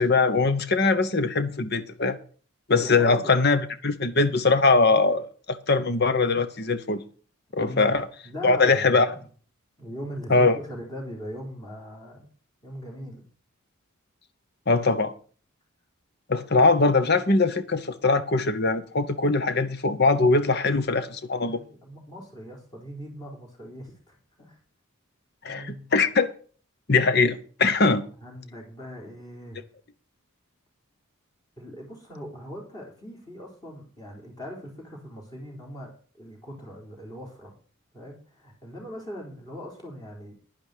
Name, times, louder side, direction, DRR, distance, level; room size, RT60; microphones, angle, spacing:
voice 1, 0.0-2.2 2.7-7.0 7.5-8.1 8.4-9.1 10.3-10.6 14.7-15.1 16.3-21.6 25.4-26.3 26.9-28.0, left 3 dB, 45° left, 1.0 m, -22 dB
voice 2, 2.7-3.4 7.6-8.0 8.2-9.2 9.8-12.3 12.6-13.2 21.4-24.6 25.5-25.9 28.2-29.6 31.6-35.9 36.2-37.5 37.9-40.3, equal, 20° left, 3.9 m, -40 dB
10.5 x 10.5 x 5.0 m
head